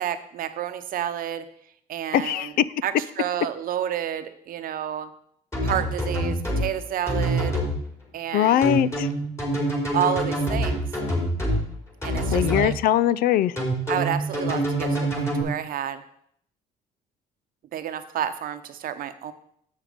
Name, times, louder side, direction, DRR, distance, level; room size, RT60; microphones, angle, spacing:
voice 1, 0.0-1.4 1.9-2.5 2.8-5.1 5.6-7.6 8.1-8.7 9.9-10.8 12.0-12.7 13.9-16.0 17.7-19.3, right 10 dB, 65° right, 10 dB, 0.8 m, -30 dB
voice 2, 2.1-2.6 8.3-9.1 12.3-13.5, left 11 dB, 70° left, 18 dB, 0.4 m, -21 dB
sound 1, 5.5-6.6 7.1-7.7 8.6-11.6 12.0-12.7 13.6-15.4, right 1 dB, 20° left, 3.7 m, -25 dB
7.3 x 6.5 x 5.0 m, 0.68 s
supercardioid pair, 80°, 16 cm